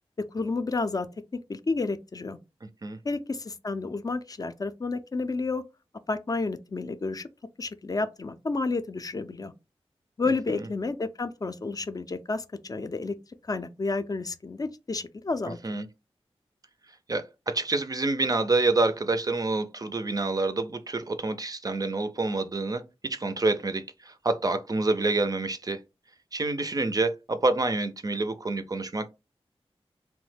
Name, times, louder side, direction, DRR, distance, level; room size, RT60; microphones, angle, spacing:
voice 1, 0.3-1.1 1.5-2.4 3.0-5.6 6.1-7.3 7.6-9.5 10.2-13.1 13.4-15.6, left 3 dB, 35° left, 0.4 m, -30 dB
voice 2, 17.1-25.8 26.3-29.1, right 3 dB, 35° right, 0.4 m, -27 dB
3.0 x 2.1 x 3.2 m
wide cardioid pair, 65°, 10 cm